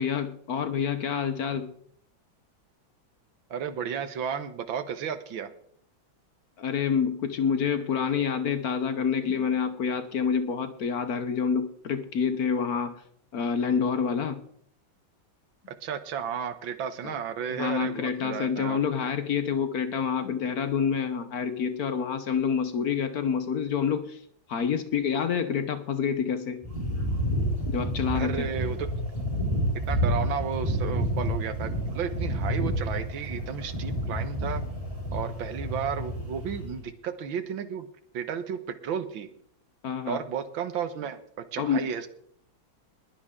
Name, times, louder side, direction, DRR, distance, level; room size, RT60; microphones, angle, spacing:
voice 1, 0.0-1.7 6.6-13.0 13.3-14.4 17.0-17.1 17.5-24.2 24.5-26.6 27.7-28.5 39.8-40.2 41.6-41.9, left 6 dB, 60° left, 10 dB, 1.2 m, -27 dB
voice 2, 3.5-5.5 15.7-18.8 28.1-28.9 29.9-34.6 35.1-37.9 38.1-39.3 40.1-41.2 41.5-42.1, right 7 dB, 75° right, 11 dB, 1.9 m, -33 dB
sound 1, 26.6-36.8, equal, 15° right, 4.4 m, -29 dB
21.0 x 9.9 x 3.7 m, 0.66 s
omnidirectional pair, 2.2 m